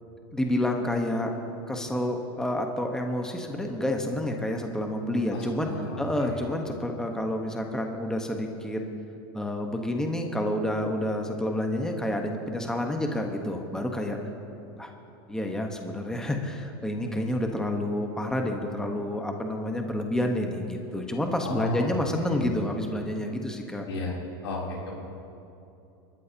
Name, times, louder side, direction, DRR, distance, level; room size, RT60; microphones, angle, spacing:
voice 1, 0.3-1.3 1.7-5.7 6.0-8.8 9.3-14.2 14.8-14.9 15.3-23.9, left 1 dB, 5° left, 3 dB, 1.3 m, -29 dB
voice 2, 5.3-6.5 21.4-21.9 22.2-22.6 23.9-24.2 24.4-24.9, left 2 dB, 90° left, -3 dB, 3.6 m, -34 dB
25.0 x 13.5 x 3.0 m, 2.8 s
supercardioid pair, 115°, 13 cm